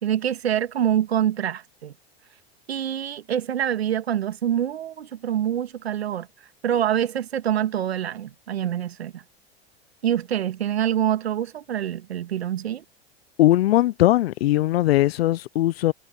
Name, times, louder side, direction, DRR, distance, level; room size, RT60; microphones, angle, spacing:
voice 1, 0.0-1.9 2.7-6.3 6.6-9.2 10.0-12.8, right 10 dB, 80° right, 1.9 m, -25 dB
voice 2, 13.4-15.9, left 15 dB, 75° left, 0.7 m, -19 dB
hypercardioid pair, 90°, 31 cm